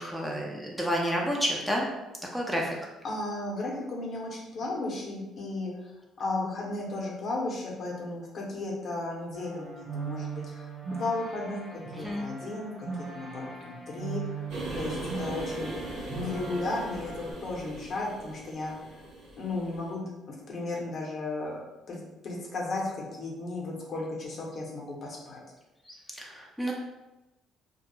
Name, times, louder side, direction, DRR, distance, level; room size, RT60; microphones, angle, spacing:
voice 1, 0.0-1.9 2.3-2.8 11.9-12.2 26.1-26.7, equal, ahead, -2 dB, 0.5 m, -30 dB
voice 2, 3.0-14.2 14.7-19.1 19.4-21.6 21.9-25.4, left 2 dB, 55° left, -3 dB, 0.8 m, -35 dB
sound 1, 9.3-17.3, right 5 dB, 50° right, 1.0 m, -39 dB
sound 2, 14.5-19.9, right 1 dB, 80° right, 0.7 m, -39 dB
2.2 x 2.0 x 3.0 m, 1.0 s
supercardioid pair, 65°, 0 cm